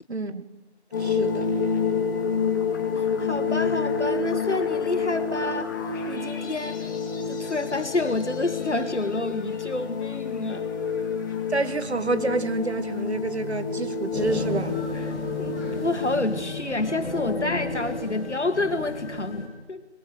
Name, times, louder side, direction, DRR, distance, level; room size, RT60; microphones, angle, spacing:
voice 1, 0.1-0.4 1.0-1.5 11.5-14.8, right 3 dB, 70° right, 1.7 m, -28 dB
sound 1, 0.9-16.2, left 5 dB, 15° left, 1.8 m, -28 dB
voice 2, 3.0-5.7 6.1-6.9 7.3-10.7 14.9-15.0 15.4-19.9, left 2 dB, 80° left, 2.4 m, -29 dB
sound 2, 14.1-19.5, left 2 dB, ahead, 2.9 m, -33 dB
22.0 x 21.5 x 8.0 m
figure-of-eight pair, 165°, 34 cm